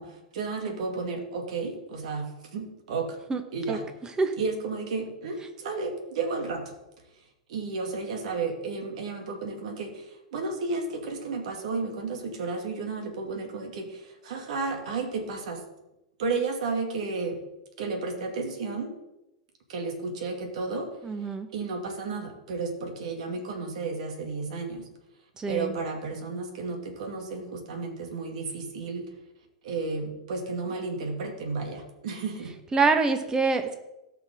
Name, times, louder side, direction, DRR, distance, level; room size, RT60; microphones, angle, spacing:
voice 1, 0.0-3.2 3.5-3.8 4.4-6.7 7.5-15.6 16.2-17.4 17.8-18.9 19.7-20.9 21.5-24.9 25.5-29.1 29.6-32.5, right 4 dB, 70° right, 4 dB, 2.4 m, -32 dB
voice 2, 21.0-21.5 25.4-25.7 32.7-33.7, right 4 dB, 20° right, 7 dB, 1.3 m, -25 dB
17.5 x 6.0 x 3.7 m, 0.92 s
hypercardioid pair, 105°, 4 cm